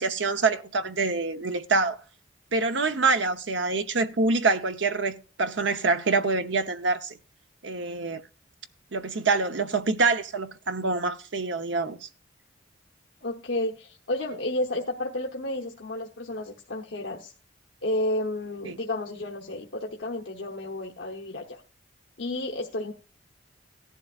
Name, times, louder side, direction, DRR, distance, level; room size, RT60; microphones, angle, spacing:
voice 1, 0.0-2.0 2.5-7.2 7.6-8.2 8.9-12.1 18.6-18.8, right 3 dB, 70° right, 0.9 m, -26 dB
voice 2, 13.2-17.3 17.8-21.6 22.2-22.9, left 1 dB, 75° left, 1.1 m, -31 dB
16.5 x 11.0 x 2.5 m
head